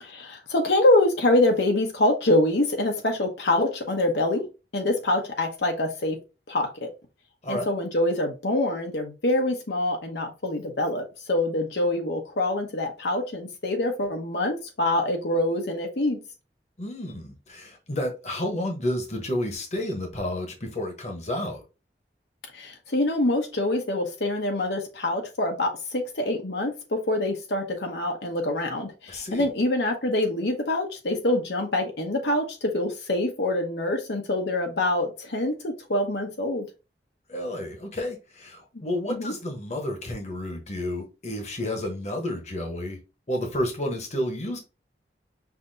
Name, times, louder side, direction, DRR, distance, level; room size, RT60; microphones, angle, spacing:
voice 1, 0.0-4.4 4.7-6.2 6.5-6.9 7.5-16.2 22.5-36.6 39.1-39.3, left 1 dB, 75° left, 1.0 m, -25 dB
voice 2, 16.8-21.6 29.1-29.5 37.3-43.0 43.3-44.6, left 1 dB, 40° left, 1.1 m, -31 dB
5.8 x 2.8 x 2.7 m
head